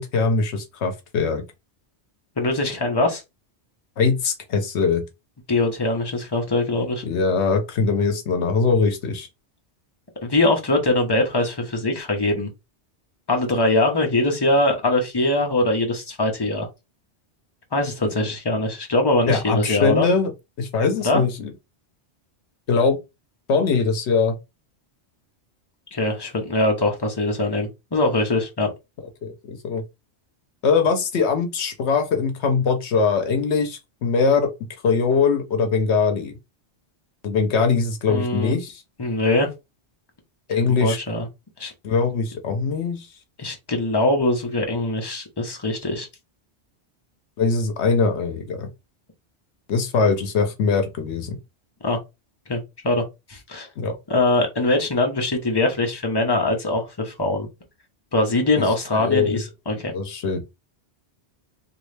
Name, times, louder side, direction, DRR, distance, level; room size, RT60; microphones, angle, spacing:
voice 1, 0.0-1.4 4.0-5.0 7.0-9.3 19.3-20.3 20.6-21.5 22.7-23.0 23.5-24.3 29.2-29.8 30.6-34.5 34.8-36.3 37.2-38.8 40.5-41.0 41.8-43.1 47.4-48.7 49.7-51.4 53.8-54.0 59.0-59.4 59.9-60.4, left 5 dB, 75° left, 1.0 m, -21 dB
voice 2, 2.4-3.2 5.5-7.0 10.2-12.5 13.3-16.7 17.7-20.1 21.0-21.2 25.9-28.7 38.1-38.5 39.0-39.5 40.8-41.3 41.6-41.7 43.4-46.1 51.8-52.0 52.5-53.0 53.3-53.7 54.1-57.5 58.1-59.9, left 2 dB, 25° left, 0.8 m, -22 dB
3.1 x 2.6 x 3.2 m
omnidirectional pair, 1.2 m